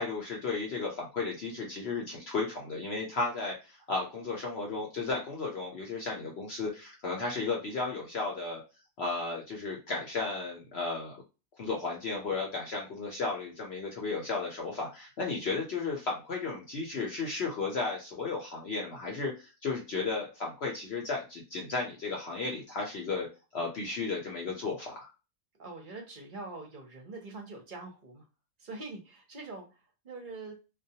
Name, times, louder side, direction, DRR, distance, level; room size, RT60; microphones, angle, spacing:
voice 1, 0.0-8.6 9.0-11.2 11.6-23.3 23.5-25.1, left 3 dB, 60° left, -1 dB, 0.8 m, -34 dB
voice 2, 25.5-28.2 28.6-30.5, right 3 dB, 50° right, 1 dB, 0.7 m, -44 dB
2.3 x 2.2 x 2.7 m, 0.30 s
omnidirectional pair, 1.5 m